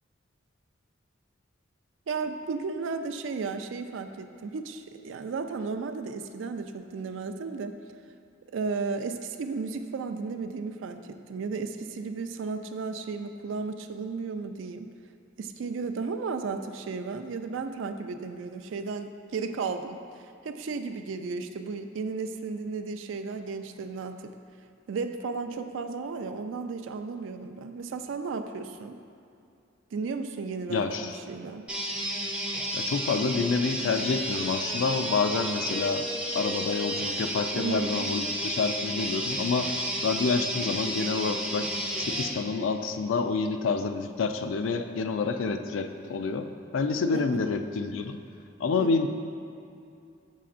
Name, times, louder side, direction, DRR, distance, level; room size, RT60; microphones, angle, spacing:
voice 1, 2.1-7.8 8.5-14.9 15.4-20.0 20.4-24.3 24.9-29.0 29.9-31.7 37.5-38.1 47.1-47.4 48.8-48.9, right 4 dB, 70° right, 7 dB, 0.4 m, -34 dB
voice 2, 30.7-31.2 32.7-36.1 36.3-39.7 40.0-41.7 42.0-46.5 46.7-48.2 48.6-49.1, left 4 dB, 75° left, 7 dB, 0.4 m, -28 dB
sound 1, 31.7-42.3, right 1 dB, 5° right, 0.5 m, -32 dB
7.6 x 5.6 x 2.5 m, 2.6 s
head